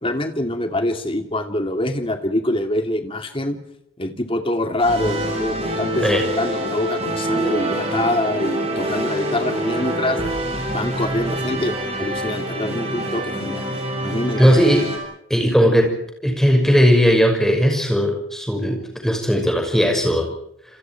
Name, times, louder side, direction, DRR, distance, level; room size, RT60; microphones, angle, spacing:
voice 1, 0.0-3.6 4.0-10.2 10.7-13.6 14.0-14.6, left 1 dB, 25° left, 6 dB, 2.6 m, -25 dB
sound 1, 4.8-15.0, right 1 dB, 30° right, 7.6 m, -26 dB
voice 2, 14.4-14.9 15.3-16.0 16.2-20.3, equal, ahead, 3 dB, 5.9 m, -17 dB
29.0 x 28.0 x 4.7 m, 0.76 s
head